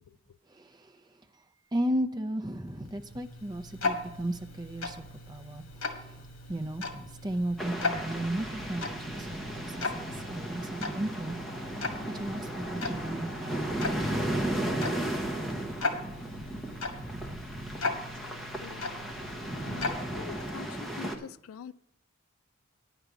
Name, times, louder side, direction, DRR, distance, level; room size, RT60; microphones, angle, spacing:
voice 1, 0.5-1.1 1.3-1.4 1.7-6.2 6.5-15.8 16.9-18.0 19.4-20.3, right 1 dB, 20° right, 6 dB, 0.6 m, -36 dB
Tick-tock, 2.5-20.8, left 3 dB, 70° left, 1.7 m, -38 dB
sound 1, 7.6-21.2, right 1 dB, ahead, 0.9 m, -35 dB
voice 2, 18.2-18.9 19.6-21.7, left 8 dB, 90° left, 16 dB, 0.4 m, -45 dB
10.5 x 5.0 x 8.1 m, 0.80 s
head